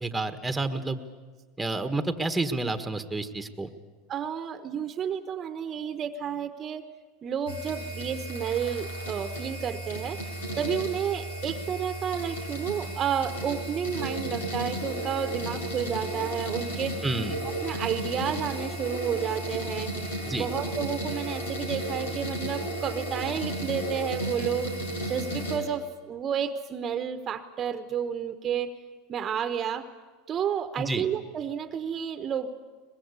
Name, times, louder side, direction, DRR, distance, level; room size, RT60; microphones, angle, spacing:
voice 1, 0.0-1.0 1.6-3.7 17.0-17.3 20.3-20.5 30.8-31.0, right 2 dB, 10° right, 9 dB, 1.5 m, -29 dB
voice 2, 4.1-6.8 7.2-10.2 10.6-17.1 17.4-19.9 20.3-28.7 29.1-29.9 30.3-32.5, right 8 dB, 35° right, 10 dB, 1.2 m, -31 dB
sound 1, 7.5-25.6, right 1 dB, 90° left, 5.4 m, -34 dB
22.5 x 20.5 x 8.3 m, 1.4 s
supercardioid pair, 110°, 0 cm